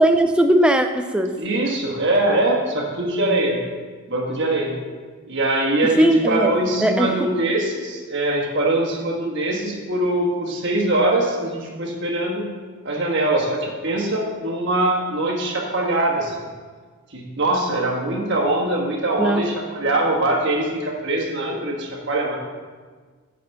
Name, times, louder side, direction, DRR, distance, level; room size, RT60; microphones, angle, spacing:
voice 1, 0.0-1.3 6.0-6.5 6.8-7.3 19.2-19.4, right 1 dB, 5° right, 6 dB, 0.4 m, -18 dB
voice 2, 1.4-3.6 4.1-4.7 5.3-12.5 12.8-16.4 17.1-22.4, right 2 dB, 50° right, -1 dB, 1.5 m, -22 dB
9.7 x 4.2 x 5.9 m, 1.5 s
head